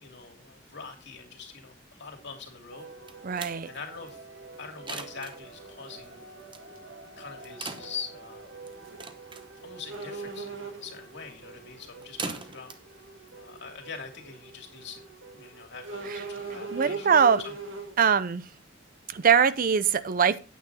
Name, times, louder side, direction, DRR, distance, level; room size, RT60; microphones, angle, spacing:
voice 1, 0.0-2.9 3.6-4.2 4.6-6.3 7.2-8.5 9.6-12.7 13.3-15.0 15.3-17.5, left 5 dB, 60° left, 3 dB, 2.8 m, -43 dB
sound 1, 2.7-17.1, right 3 dB, 65° right, 1.8 m, -49 dB
sound 2, 2.8-14.2, right 4 dB, 25° right, 1.0 m, -44 dB
voice 2, 3.2-3.7 16.1-16.2 16.7-17.4 18.0-18.5 19.1-20.4, right 7 dB, 45° right, 15 dB, 0.5 m, -22 dB
sound 3, 4.1-4.2 5.8-6.0 6.4-6.5 6.7-6.8 8.7-9.0 9.3-9.4 9.9-11.0 12.1-12.2 12.7-12.8 13.3-13.5 13.9-14.0 15.8-18.0, right 4 dB, 85° right, 3.1 m, -38 dB
9.3 x 8.5 x 4.1 m, 0.32 s
head